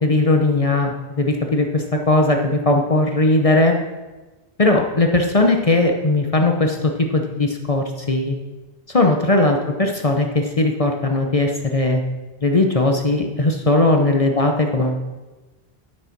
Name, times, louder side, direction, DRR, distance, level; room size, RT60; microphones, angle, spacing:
voice 1, 0.0-3.8 4.6-8.4 8.9-12.0 12.4-15.0, left 2 dB, 35° left, 3 dB, 0.9 m, -18 dB
9.9 x 6.5 x 5.9 m, 1.2 s
omnidirectional pair, 1.1 m